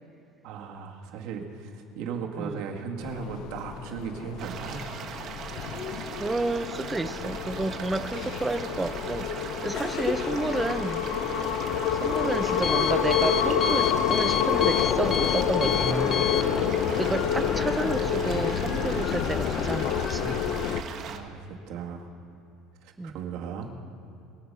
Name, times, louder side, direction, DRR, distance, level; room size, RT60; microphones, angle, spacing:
voice 1, 0.4-4.8 5.3-5.4 16.5-16.8 21.0-22.1 22.8-23.7, right 6 dB, 70° right, 2 dB, 2.0 m, -37 dB
sound 1, 3.0-20.8, left 8 dB, 55° left, 0.8 m, -28 dB
sound 2, 4.4-21.2, right 7 dB, 45° right, 1.3 m, -40 dB
voice 2, 6.1-11.0 11.9-16.3 16.9-20.4 23.0-23.2, right 2 dB, 10° right, 11 dB, 0.6 m, -31 dB
Alarm, 11.2-17.6, left 8 dB, 30° left, 0.4 m, -32 dB
23.5 x 8.1 x 5.6 m, 2.9 s
cardioid pair, 145°, 0 cm